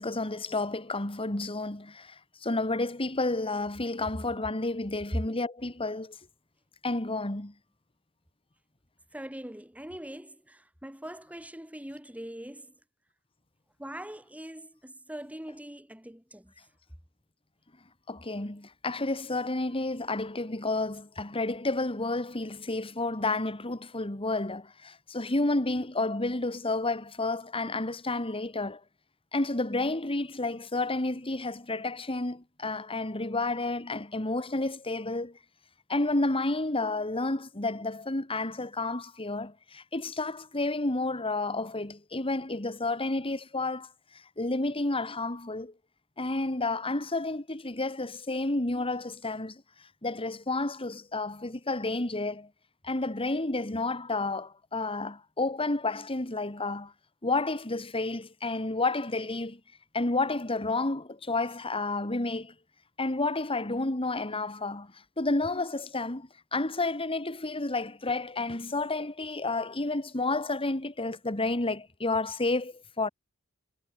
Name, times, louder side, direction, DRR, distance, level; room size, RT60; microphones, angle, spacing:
voice 1, 0.0-6.2 6.8-7.5 18.1-28.8 29.3-35.4 35.9-43.9 44.4-45.7 46.2-49.6 50.0-52.5 52.8-56.9 57.2-59.6 59.9-62.5 63.0-73.1, left 2 dB, 25° left, 2.2 m, -31 dB
voice 2, 9.1-12.7 13.8-16.5, right 1 dB, 5° right, 6.6 m, -42 dB
head